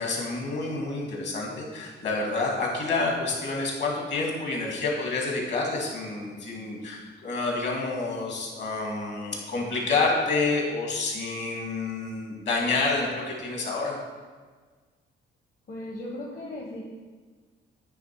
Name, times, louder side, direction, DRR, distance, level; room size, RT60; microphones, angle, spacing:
voice 1, 0.0-14.0, left 3 dB, 60° left, -1 dB, 2.0 m, -28 dB
voice 2, 15.7-16.8, left 1 dB, 45° left, -1 dB, 1.0 m, -37 dB
9.3 x 3.3 x 4.5 m, 1.5 s
cardioid pair, 90°, 20 cm